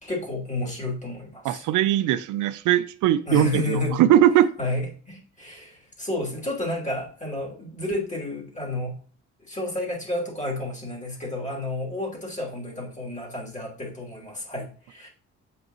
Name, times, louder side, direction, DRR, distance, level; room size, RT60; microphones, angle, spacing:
voice 1, 0.0-1.6 3.3-4.0 4.6-9.0 9.5-15.1, left 2 dB, 25° left, -2 dB, 3.0 m, -31 dB
voice 2, 1.4-4.5, right 12 dB, 85° right, 12 dB, 0.5 m, -20 dB
7.8 x 5.4 x 3.0 m, 0.42 s
cardioid pair, 90°, 30 cm